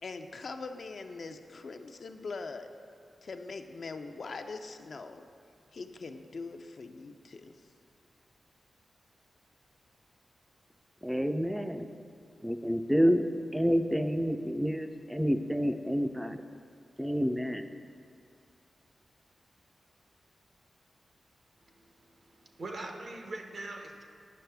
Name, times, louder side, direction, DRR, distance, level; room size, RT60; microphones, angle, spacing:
voice 1, 0.0-2.7 3.2-5.3 5.7-7.5, left 4 dB, 65° left, 6 dB, 0.4 m, -42 dB
voice 2, 11.0-11.9 12.4-13.2 13.5-16.4 17.0-17.7, equal, 5° right, 8 dB, 0.4 m, -28 dB
voice 3, 21.7-24.1, right 2 dB, 65° right, 3 dB, 0.8 m, -43 dB
9.3 x 5.6 x 3.4 m, 2.3 s
cardioid pair, 65°, 0 cm